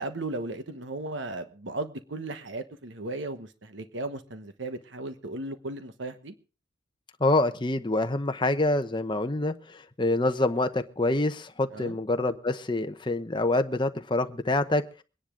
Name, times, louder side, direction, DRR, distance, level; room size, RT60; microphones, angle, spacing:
voice 1, 0.0-6.3 11.7-12.0, right 2 dB, 75° right, 9 dB, 1.2 m, -36 dB
voice 2, 7.2-14.8, left 2 dB, 25° left, 8 dB, 0.9 m, -26 dB
24.0 x 10.5 x 3.7 m, 0.35 s
head